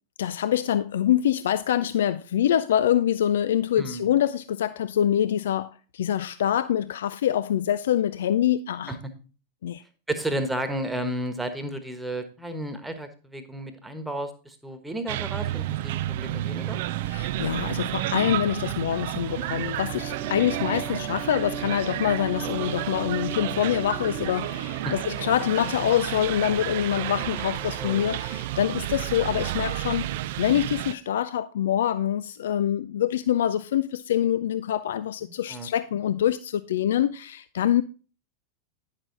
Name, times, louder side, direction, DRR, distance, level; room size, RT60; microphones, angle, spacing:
voice 1, 0.2-9.0 9.6-9.8 17.1-30.1 30.4-37.8, left 10 dB, 60° left, 0.3 m, -25 dB
voice 2, 3.8-4.2 8.9-9.0 10.1-16.8 20.9-21.0 24.8-24.9 27.8-28.1 35.3-35.7, right 1 dB, 5° right, 1.3 m, -32 dB
sound 1, 15.1-30.9, right 14 dB, 50° right, 0.4 m, -31 dB
sound 2, 18.9-28.5, right 8 dB, 35° right, 1.1 m, -39 dB
9.9 x 6.5 x 3.9 m
figure-of-eight pair, 90°, 0 cm